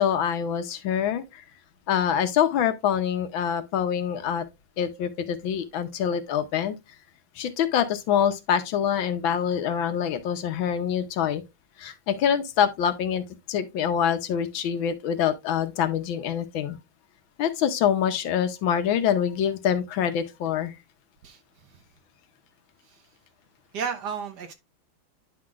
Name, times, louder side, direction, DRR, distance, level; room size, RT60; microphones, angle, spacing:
voice 1, 0.0-1.4 1.9-4.4 4.8-6.8 7.4-11.4 11.8-16.8 17.4-20.7, left 8 dB, 75° left, 1.6 m, -25 dB
voice 2, 23.7-24.5, right 6 dB, 60° right, 1.3 m, -33 dB
9.7 x 5.8 x 2.4 m
omnidirectional pair, 2.2 m